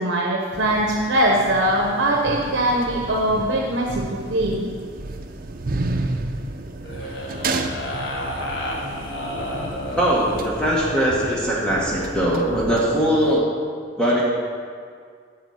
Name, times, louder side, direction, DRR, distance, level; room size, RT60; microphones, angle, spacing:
voice 1, 0.0-4.6 9.3-9.4, right 1 dB, 70° right, -1 dB, 0.9 m, -21 dB
sound 1, 0.5-13.4, right 2 dB, 45° right, 0.6 m, -32 dB
sound 2, 6.8-10.8 11.6-12.3, left 1 dB, 65° left, 1.4 m, -32 dB
voice 2, 10.0-13.5 14.0-14.2, equal, 5° left, -5 dB, 1.2 m, -20 dB
9.6 x 4.9 x 7.7 m, 2.1 s
head